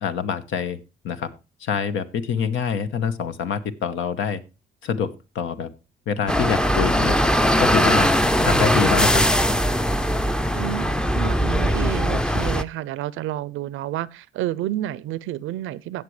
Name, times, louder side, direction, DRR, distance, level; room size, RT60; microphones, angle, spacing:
voice 1, 0.0-0.8 1.0-1.3 1.6-4.4 4.8-5.7 6.1-7.2 7.6-8.1 8.4-9.3, left 7 dB, 80° left, 1.1 m, -25 dB
sound 1, 6.3-12.6, equal, 5° left, 0.5 m, -20 dB
voice 2, 10.5-10.9 11.1-16.0, right 13 dB, 85° right, 0.6 m, -29 dB
16.5 x 6.7 x 3.2 m
cardioid pair, 90°, 20 cm